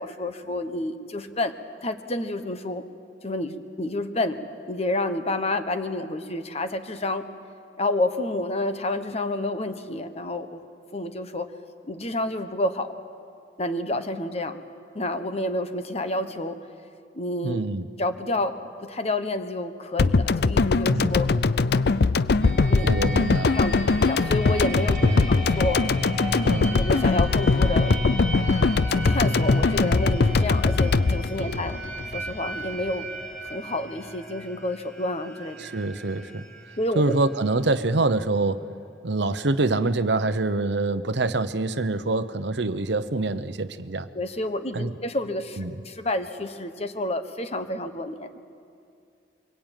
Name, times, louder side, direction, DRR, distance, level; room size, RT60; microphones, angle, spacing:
voice 1, 0.0-1.5 1.8-2.8 3.2-4.4 4.7-7.2 7.8-10.6 10.9-11.5 11.9-12.9 13.6-14.6 14.9-16.6 17.1-17.6 18.0-18.5 18.8-21.3 22.7-22.9 23.4-25.8 26.7-27.9 28.9-31.8 32.1-33.1 33.4-35.6 36.8-37.0 44.1-48.5, left 2 dB, 35° left, 9 dB, 1.2 m, -29 dB
voice 2, 17.4-17.9 20.9-21.1 22.8-23.6 25.0-25.2 26.4-26.8 31.4-31.5 35.6-36.5 36.9-38.6 39.0-44.1 44.7-44.9 45.6-45.7, right 2 dB, 70° right, 12 dB, 0.9 m, -25 dB
sound 1, 20.0-32.3 32.6-32.7, left 3 dB, 60° left, 0.5 m, -21 dB
sound 2, 22.4-38.0, right 1 dB, 5° left, 4.1 m, -35 dB
24.0 x 23.0 x 9.1 m, 2.4 s
head